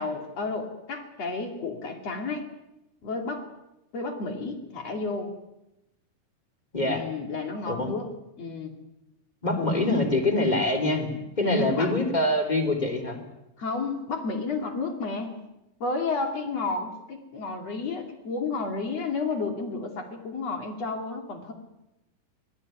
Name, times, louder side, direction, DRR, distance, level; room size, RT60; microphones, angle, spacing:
voice 1, 0.0-2.4 3.0-3.5 3.9-5.3 6.8-8.1 8.4-8.8 9.6-10.0 11.4-11.9 13.6-15.3 15.8-21.5, left 3 dB, 45° left, 4 dB, 3.3 m, -31 dB
voice 2, 6.7-7.0 7.7-7.9 9.4-11.1 11.4-13.2, left 2 dB, 10° left, 5 dB, 3.1 m, -24 dB
25.5 x 18.5 x 9.3 m, 0.92 s
omnidirectional pair, 4.8 m